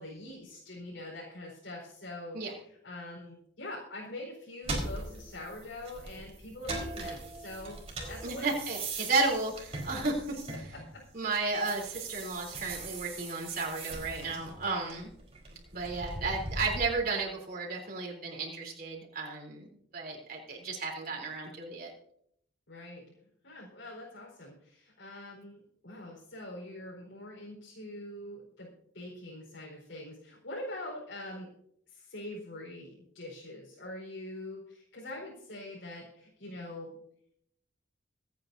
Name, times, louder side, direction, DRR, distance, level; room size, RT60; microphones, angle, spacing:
voice 1, 0.0-2.4 2.8-7.8 8.1-8.5 10.7-11.3 22.7-23.2 23.4-28.7 28.9-31.5 31.9-37.0, left 1 dB, 70° left, -5 dB, 4.6 m, -44 dB
sound 1, 4.6-11.1 11.4-16.9, right 2 dB, 30° right, 4.2 m, -40 dB
voice 2, 8.2-10.2 10.6-10.7 11.1-15.1 15.7-19.7 19.9-21.9, right 3 dB, 45° right, -1 dB, 3.7 m, -33 dB
25.5 x 9.6 x 2.7 m, 0.71 s
head